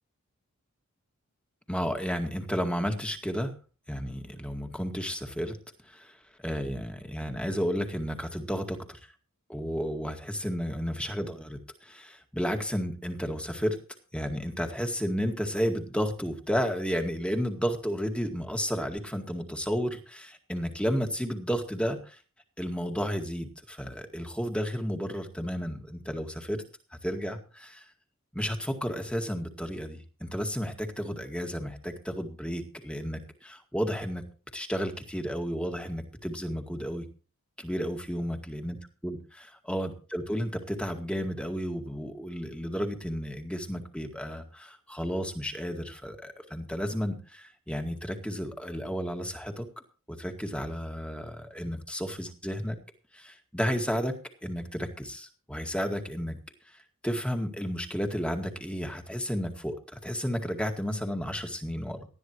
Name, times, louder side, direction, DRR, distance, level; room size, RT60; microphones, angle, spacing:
voice 1, 1.7-3.5 3.9-5.6 5.8-6.2 6.4-9.1 9.5-13.8 14.1-22.2 22.6-26.6 27.0-27.9 28.3-34.3 34.5-37.1 37.6-49.7 50.1-52.8 53.1-54.2 54.4-56.4 56.7-62.1, equal, 5° left, 5 dB, 2.0 m, -32 dB
19.0 x 13.0 x 3.1 m, 0.36 s
head